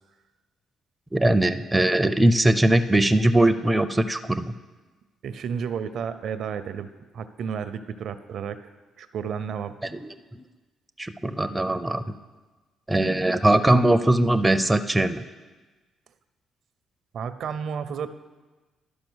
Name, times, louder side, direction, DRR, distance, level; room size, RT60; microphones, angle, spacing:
voice 1, 1.1-4.5 9.8-10.2 11.0-12.1 12.9-15.2, right 1 dB, 10° right, 10 dB, 0.4 m, -21 dB
voice 2, 5.2-6.9 7.1-8.6 9.0-9.8 17.1-18.1, right 7 dB, 65° right, 12 dB, 0.5 m, -31 dB
12.0 x 5.0 x 6.2 m, 1.3 s
cardioid pair, 90°, 0 cm